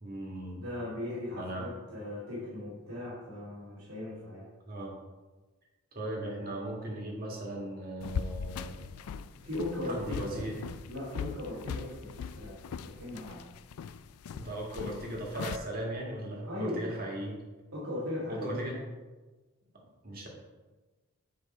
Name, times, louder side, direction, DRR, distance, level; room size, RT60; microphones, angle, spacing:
voice 1, 0.0-0.6 1.3-1.7 4.7-4.9 5.9-8.8 9.9-10.6 14.3-17.4 18.3-18.8 20.0-20.3, right 1 dB, 40° right, -1 dB, 1.8 m, -37 dB
voice 2, 0.6-4.5 9.4-10.6 10.9-12.6 12.8-13.4 16.4-16.9 17.7-18.8, left 1 dB, 85° right, -8 dB, 2.5 m, -38 dB
sound 1, 8.0-15.6, left 6 dB, 85° left, 0.3 m, -40 dB
8.1 x 5.0 x 4.3 m, 1.2 s
head